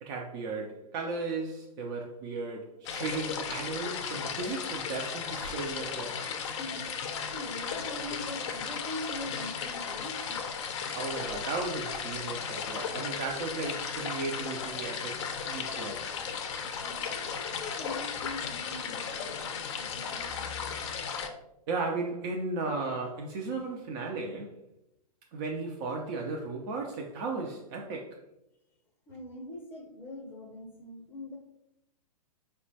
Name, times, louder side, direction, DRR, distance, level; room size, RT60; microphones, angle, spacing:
voice 1, 0.0-6.2 10.9-16.1 21.7-24.5 25.3-28.2, right 3 dB, 35° right, 0.4 m, -35 dB
sound 1, 2.8-21.3, left 6 dB, 50° left, 0.5 m, -35 dB
voice 2, 6.6-10.4 16.1-20.8 29.1-31.4, left 1 dB, 10° left, 0.7 m, -43 dB
4.2 x 2.2 x 2.7 m
figure-of-eight pair, 110°, 20 cm